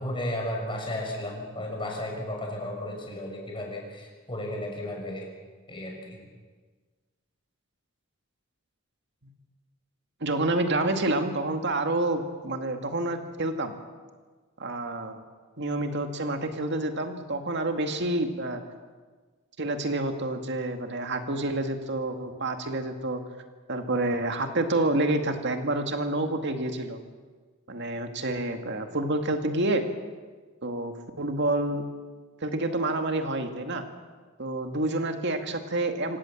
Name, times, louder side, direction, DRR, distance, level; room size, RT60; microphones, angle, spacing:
voice 1, 0.0-5.3 5.7-6.2, left 1 dB, 25° left, 0 dB, 6.4 m, -34 dB
voice 2, 10.2-13.8 14.6-15.2 15.6-18.6 19.6-23.2 23.7-27.0 27.7-29.8 30.6-31.8 32.4-33.8 34.4-36.2, right 2 dB, 60° right, 5 dB, 2.2 m, -28 dB
26.5 x 17.5 x 7.4 m, 1.4 s
head